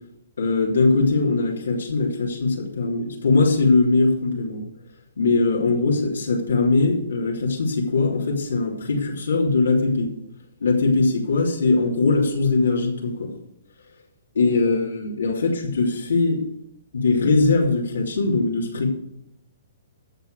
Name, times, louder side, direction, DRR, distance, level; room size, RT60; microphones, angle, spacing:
voice 1, 0.4-4.7 5.2-10.1 10.6-13.3 14.3-16.4 16.9-18.9, left 3 dB, 85° left, -2 dB, 3.2 m, -21 dB
15.0 x 6.1 x 6.5 m, 0.79 s
hypercardioid pair, 135°, 0 cm